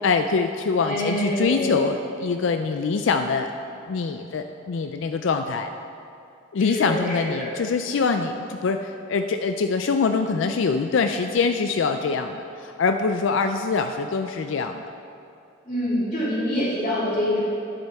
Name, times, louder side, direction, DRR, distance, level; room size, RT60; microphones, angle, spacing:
voice 1, 0.0-3.5 3.9-5.7 6.5-14.9, left 4 dB, 60° left, 6 dB, 0.4 m, -24 dB
voice 2, 0.8-1.8 6.6-7.5 15.6-17.4, left 1 dB, 35° left, -12 dB, 2.4 m, -26 dB
12.0 x 9.7 x 3.5 m, 2.6 s
head